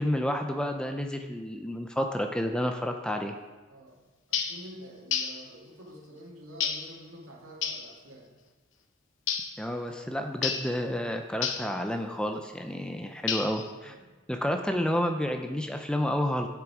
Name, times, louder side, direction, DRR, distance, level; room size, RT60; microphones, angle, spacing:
voice 1, 0.0-3.4 9.6-13.9 14.3-16.5, equal, 5° left, 5 dB, 0.5 m, -30 dB
voice 2, 3.7-4.0 4.3-8.3 13.8-14.2, equal, 85° right, -2 dB, 2.3 m, -48 dB
sound 1, 4.3-4.6 5.1-5.4 6.6-6.9 7.6-7.9 9.3-9.6 10.4-10.7 11.4-11.7 13.3-13.7, left 7 dB, 60° left, 0.8 m, -30 dB
8.9 x 7.4 x 4.9 m, 1.3 s
head